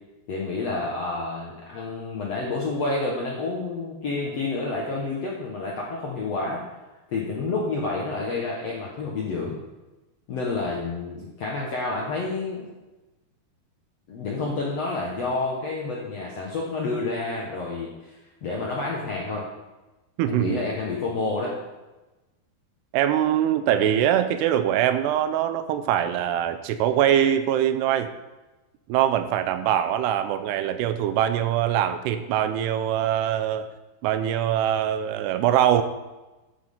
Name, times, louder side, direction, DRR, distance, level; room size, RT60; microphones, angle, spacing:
voice 1, 0.3-6.6 7.1-9.6 10.3-12.7 14.1-18.1 18.4-19.5 20.3-21.6, left 3 dB, 60° left, -3 dB, 1.7 m, -29 dB
voice 2, 20.2-20.6 22.9-28.1 28.9-33.7 34.0-35.8, right 10 dB, 80° right, 10 dB, 2.6 m, -23 dB
13.5 x 9.6 x 3.7 m, 1.1 s
omnidirectional pair, 4.9 m